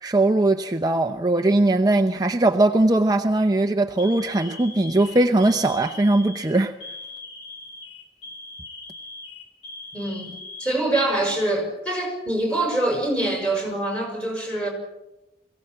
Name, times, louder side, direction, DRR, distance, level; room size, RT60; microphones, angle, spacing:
voice 1, 0.0-6.7, right 2 dB, 20° right, 5 dB, 0.7 m, -20 dB
Alarm, 1.1-1.6 2.5-2.8 3.2-3.4 4.0-11.5 11.8-11.9 12.9-13.6, left 3 dB, 80° left, 4.6 m, -41 dB
voice 2, 9.9-10.3 10.6-14.7, right 1 dB, 5° left, 1 dB, 6.2 m, -24 dB
22.5 x 16.5 x 7.8 m, 0.97 s
head